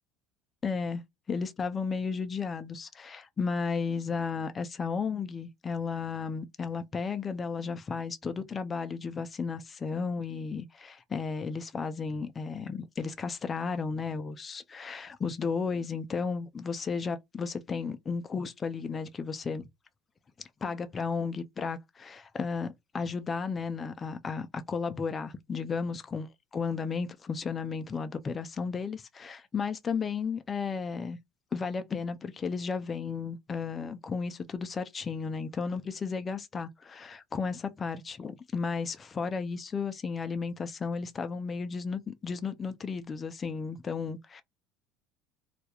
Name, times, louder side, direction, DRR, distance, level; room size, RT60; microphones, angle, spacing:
voice 1, 0.6-1.0 1.3-19.7 20.6-31.2 31.5-44.4, left 5 dB, 25° left, 0.3 m, -34 dB
2.3 x 2.0 x 2.8 m
cardioid pair, 130°, 0 cm